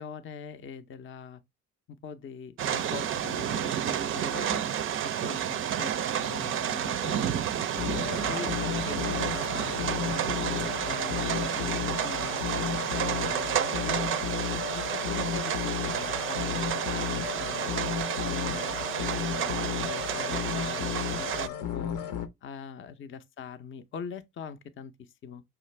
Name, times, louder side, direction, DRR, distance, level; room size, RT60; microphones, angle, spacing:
voice 1, 0.0-1.4 1.9-4.6 5.0-7.7 8.1-14.2 14.7-17.7 18.2-22.0 22.4-25.4, left 6 dB, 35° left, 0.5 m, -42 dB
sound 1, 2.6-21.5, right 10 dB, 40° right, 0.4 m, -31 dB
sound 2, 7.8-22.3, left 9 dB, 70° left, 0.8 m, -34 dB
5.7 x 2.4 x 3.1 m
cardioid pair, 110°, 34 cm